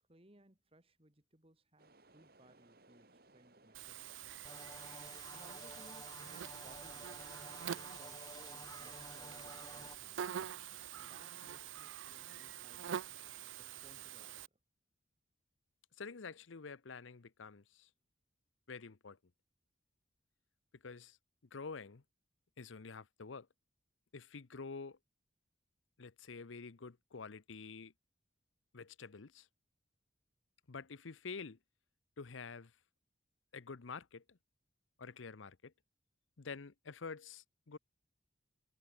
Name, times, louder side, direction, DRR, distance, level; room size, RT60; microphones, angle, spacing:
voice 1, 0.1-4.4 5.3-6.2 6.6-7.4 7.9-10.3 11.0-13.1 13.6-14.4, right 1 dB, 30° right, 2.4 m, -64 dB
sound 1, 1.8-14.4, right 2 dB, 50° right, 3.6 m, -66 dB
Buzz, 3.7-14.5, right 9 dB, 80° right, 0.4 m, -46 dB
sound 2, 4.4-10.0, left 3 dB, 20° left, 1.0 m, -53 dB
voice 2, 16.0-17.9 18.7-19.2 20.8-21.2 21.5-22.0 22.6-23.5 24.1-25.0 26.0-27.9 28.7-29.5 30.7-31.6 32.2-32.7 33.5-34.4 35.0-35.7 36.4-37.8, left 4 dB, 90° left, 0.8 m, -48 dB
head